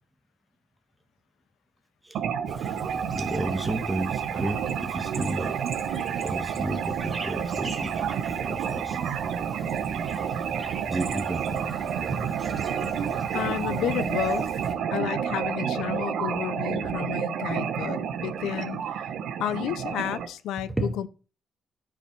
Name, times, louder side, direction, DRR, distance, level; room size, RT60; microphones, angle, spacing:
sound 1, 2.1-20.3, right 8 dB, 75° right, 0.9 m, -30 dB
Chirp tweet, 2.5-14.8, right 2 dB, 25° right, 1.8 m, -41 dB
voice 1, 3.1-5.6 6.2-7.9 8.2-9.0 10.9-11.7 12.0-12.9 20.6-20.9, right 1 dB, 10° right, 1.3 m, -33 dB
voice 2, 13.3-14.5 14.9-19.1 19.4-21.1, left 11 dB, 85° left, 0.5 m, -31 dB
10.0 x 4.8 x 4.5 m
cardioid pair, 90°, 0 cm